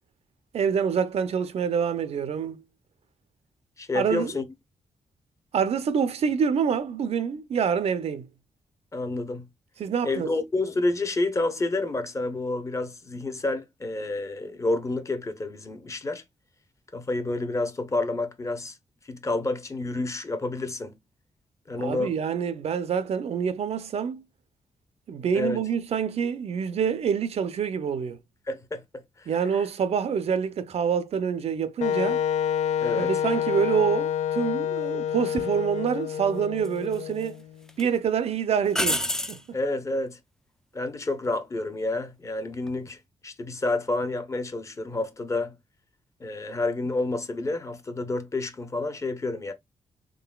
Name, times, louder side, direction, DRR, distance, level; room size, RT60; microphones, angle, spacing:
voice 1, 0.5-2.6 3.9-4.3 5.5-8.3 9.8-10.3 21.8-24.3 25.1-28.2 29.3-32.2 33.0-37.4 37.8-39.0 39.3-39.6, right 7 dB, 60° right, 0.5 m, -26 dB
voice 2, 3.8-4.5 8.9-9.5 10.0-16.2 16.9-18.8 19.0-21.0 21.7-22.1 25.3-25.6 28.5-28.8 29.2-29.3 32.8-33.1 39.5-40.2 40.7-45.6 46.2-49.5, left 2 dB, 25° left, 0.7 m, -29 dB
Wind instrument woodwind instrument, 31.8-37.6, left 9 dB, 70° left, 0.4 m, -28 dB
sound 1, 35.4-35.5 36.6-37.3 37.7-37.8 38.7-39.4 42.5-42.9, left 1 dB, 5° left, 0.4 m, -28 dB
3.8 x 3.7 x 2.3 m
wide cardioid pair, 155°, 12 cm